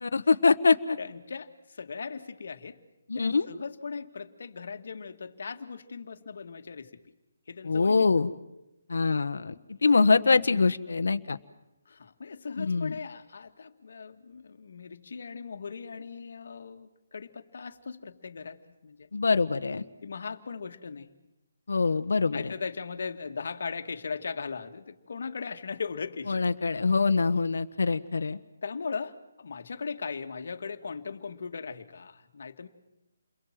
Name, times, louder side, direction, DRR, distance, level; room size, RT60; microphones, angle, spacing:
voice 1, 0.0-1.0 3.1-3.5 7.6-8.3 8.9-11.4 12.6-13.0 19.1-19.8 21.7-22.5 26.3-28.4, left 4 dB, 85° left, 10 dB, 1.3 m, -24 dB
voice 2, 1.0-2.8 3.2-7.0 7.5-8.1 10.5-10.6 11.9-19.1 20.0-21.1 22.3-26.4 28.6-32.7, left 5 dB, 60° left, 6 dB, 2.1 m, -38 dB
29.5 x 22.5 x 7.6 m, 0.93 s
hypercardioid pair, 170°, 0 cm